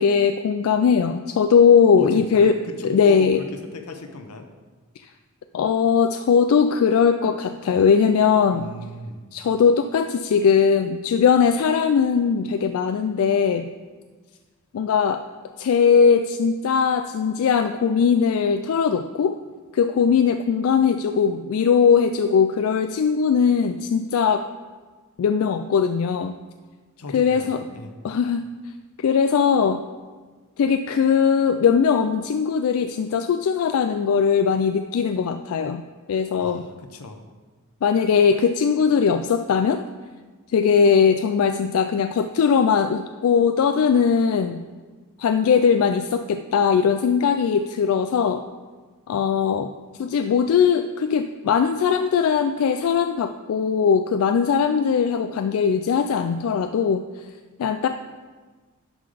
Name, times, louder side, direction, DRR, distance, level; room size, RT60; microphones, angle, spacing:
voice 1, 0.0-2.6 2.8-3.4 5.5-8.7 9.3-13.7 14.7-15.2 15.6-19.3 19.7-24.4 25.2-26.3 27.1-27.6 28.0-28.5 29.0-29.8 30.6-35.8 36.1-36.6 37.8-39.8 40.5-44.6 45.2-48.4 49.1-49.7 50.0-57.3 57.6-57.9, left 6 dB, 65° left, 8 dB, 0.3 m, -20 dB
voice 2, 2.0-4.5 8.5-9.2 27.0-27.9 36.4-37.2, left 2 dB, 85° left, 6 dB, 0.8 m, -37 dB
11.0 x 3.8 x 4.9 m, 1.4 s
head